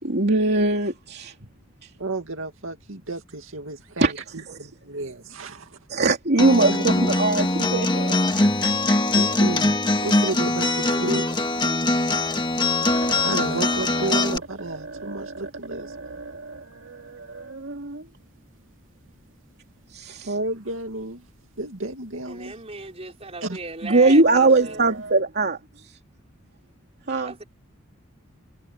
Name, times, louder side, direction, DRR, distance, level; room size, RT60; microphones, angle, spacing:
voice 1, 0.0-1.3 4.0-4.1 4.5-4.6 5.9-9.0 10.9-11.2 11.6-11.8 19.9-20.3 23.8-25.6 27.1-27.3, right 2 dB, 55° right, 3.0 m, -21 dB
voice 2, 2.0-5.8 9.1-11.3 13.2-15.9 20.2-21.3 21.6-22.5 23.4-23.6, right 2 dB, 90° right, 2.3 m, -32 dB
Acoustic guitar, 6.4-14.4, left 2 dB, 25° left, 1.6 m, -22 dB
sound 1, 10.5-11.3 11.6-11.7 12.1-12.2 12.5-12.6 12.9-19.2 20.3-20.4 20.7-21.0 21.3-21.6 22.1-22.2 22.5-22.9 23.5-25.2, right 3 dB, 75° right, 2.8 m, -39 dB
voice 3, 22.3-24.8 27.2-27.4, right 3 dB, 30° right, 5.4 m, -37 dB
head